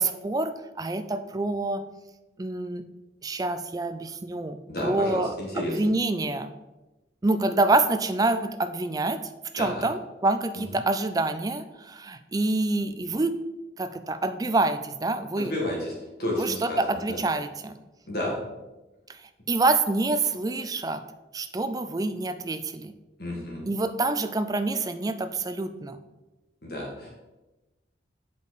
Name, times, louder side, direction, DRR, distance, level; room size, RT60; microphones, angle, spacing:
voice 1, 0.0-1.9 2.4-2.8 3.2-6.5 7.2-13.4 13.8-15.5 16.3-17.8 19.1-19.2 19.5-21.0 21.3-22.9 23.7-26.0, right 2 dB, 20° right, 10 dB, 0.4 m, -27 dB
voice 2, 4.7-5.8 9.6-9.8 15.4-15.9 16.2-16.8 17.1-17.2 18.1-18.4 23.2-23.6 26.6-27.1, left 1 dB, 55° left, -2 dB, 1.6 m, -31 dB
8.4 x 5.0 x 4.1 m, 1.1 s
head